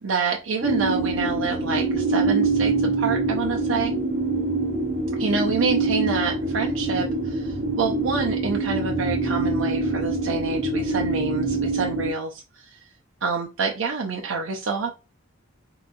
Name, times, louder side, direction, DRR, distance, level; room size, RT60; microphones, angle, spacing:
voice 1, 0.0-3.9 5.2-12.8 13.2-14.9, right 4 dB, 75° right, 0 dB, 0.6 m, -27 dB
sound 1, 0.6-12.1, right 3 dB, 40° right, 0.8 m, -24 dB
3.8 x 3.8 x 2.6 m, 0.29 s
head